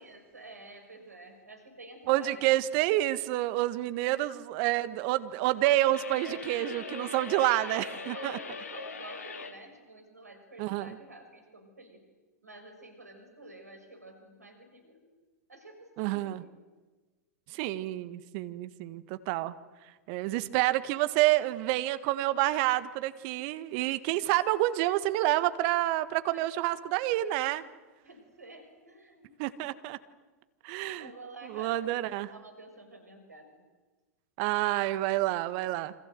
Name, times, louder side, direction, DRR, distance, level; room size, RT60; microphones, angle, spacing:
voice 1, 0.0-2.6 6.3-7.0 7.4-12.1 12.4-15.2 15.5-16.6 26.3-26.5 28.0-29.4 30.8-33.5, right 2 dB, 80° right, 6 dB, 6.1 m, -50 dB
voice 2, 2.1-8.4 10.6-11.0 16.0-16.4 17.5-19.5 20.1-27.6 29.4-30.0 30.6-31.1 31.4-32.3 34.4-35.9, right 16 dB, 45° right, 13 dB, 1.6 m, -28 dB
sound 1, 5.9-9.6, left 4 dB, 70° left, 2.7 m, -41 dB
28.5 x 26.0 x 7.9 m, 1.3 s
figure-of-eight pair, 95°, 9 cm